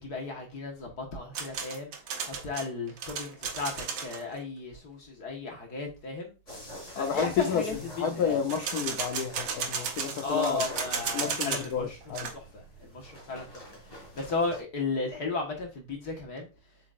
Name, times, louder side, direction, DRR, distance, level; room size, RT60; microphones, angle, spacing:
voice 1, 0.0-1.9 2.2-6.3 7.0-7.8 8.1-8.4 10.2-16.5, left 3 dB, 50° left, 1.8 m, -35 dB
sound 1, 1.3-4.2 8.5-11.7 12.0-12.3, right 6 dB, 70° right, 1.8 m, -34 dB
sound 2, 6.5-14.6, equal, 25° left, 3.6 m, -47 dB
voice 2, 7.0-10.6 11.1-12.3, left 6 dB, 90° left, 0.8 m, -31 dB
7.9 x 5.2 x 2.5 m
omnidirectional pair, 2.4 m